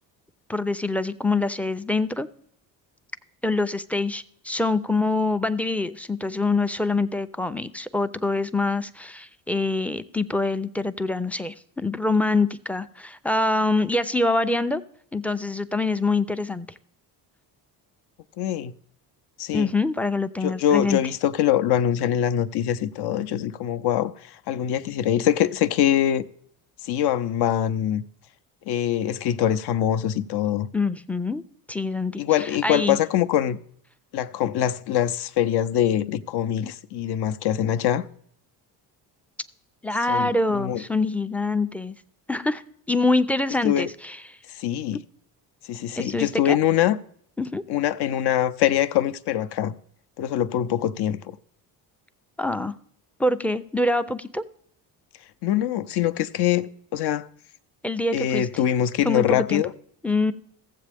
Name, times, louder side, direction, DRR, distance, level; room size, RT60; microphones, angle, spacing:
voice 1, 0.5-2.3 3.4-14.8 15.1-16.7 19.5-21.0 30.7-31.4 31.7-33.0 39.8-42.0 42.3-42.6 42.9-44.2 46.0-46.6 47.4-47.6 52.4-52.7 53.2-54.4 57.8-58.5 59.0-59.6 60.0-60.3, left 2 dB, 5° left, 0.4 m, -25 dB
voice 2, 18.4-18.7 19.4-19.7 20.4-26.2 26.8-28.0 28.7-30.7 32.2-33.6 34.1-38.1 40.1-40.8 43.6-43.9 44.5-45.0 45.7-47.0 47.7-49.7 50.2-51.4 55.4-57.3 58.1-59.7, left 11 dB, 65° left, 0.6 m, -23 dB
15.0 x 7.5 x 3.4 m
supercardioid pair, 75°, 43 cm